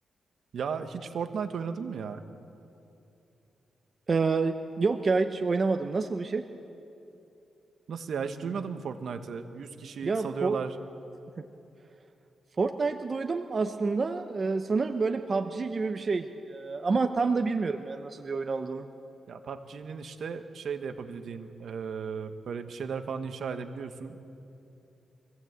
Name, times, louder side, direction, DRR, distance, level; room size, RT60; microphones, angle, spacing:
voice 1, 0.5-2.2 7.9-10.8 19.3-24.3, right 6 dB, 70° right, 8 dB, 1.3 m, -35 dB
voice 2, 4.1-6.4 10.0-10.6 11.4-11.5 12.6-18.9, right 4 dB, 40° right, 6 dB, 0.8 m, -28 dB
24.0 x 16.0 x 8.1 m, 2.8 s
cardioid pair, 85°, 0 cm